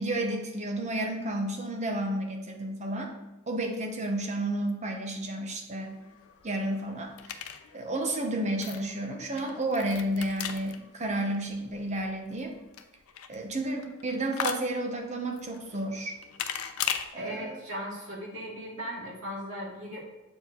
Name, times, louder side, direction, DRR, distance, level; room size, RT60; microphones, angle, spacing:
voice 1, 0.0-3.1 3.5-6.0 6.4-7.4 7.7-12.5 13.3-16.2 17.1-17.6, right 1 dB, 35° right, 2 dB, 1.0 m, -31 dB
sound 1, 5.8-17.1, left 8 dB, 80° left, 0.5 m, -39 dB
voice 2, 17.2-20.0, equal, 70° right, -4 dB, 2.3 m, -37 dB
7.7 x 4.5 x 3.8 m, 1.0 s
head